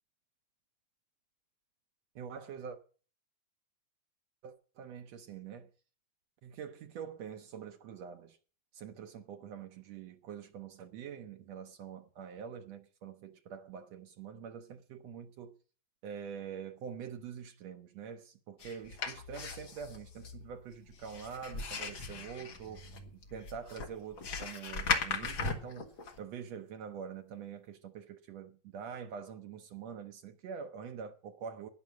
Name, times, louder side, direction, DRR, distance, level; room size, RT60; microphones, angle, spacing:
voice 1, 2.1-2.8 4.4-5.7 6.4-8.4 8.7-15.5 16.0-22.8 23.1-25.9 26.2-31.7, right 7 dB, 70° right, 1.6 m, -45 dB
sound 1, 18.6-26.2, left 5 dB, 45° left, 2.1 m, -38 dB
12.5 x 10.5 x 6.2 m
omnidirectional pair, 3.9 m